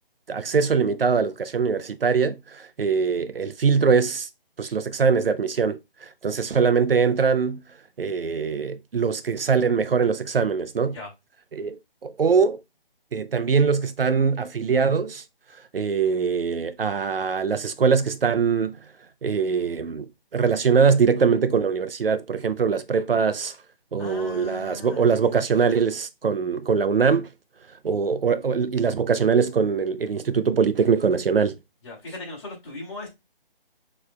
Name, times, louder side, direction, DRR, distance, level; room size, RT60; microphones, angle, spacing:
voice 1, 0.3-4.3 4.6-7.6 8.0-11.0 11.5-12.6 13.1-15.2 15.7-18.8 19.2-23.6 23.9-27.3 27.8-31.6, right 5 dB, 70° right, 0.7 m, -22 dB
voice 2, 24.0-25.4 31.8-33.1, left 2 dB, 30° left, 3.0 m, -38 dB
7.1 x 3.2 x 2.2 m
figure-of-eight pair, 160°, 30 cm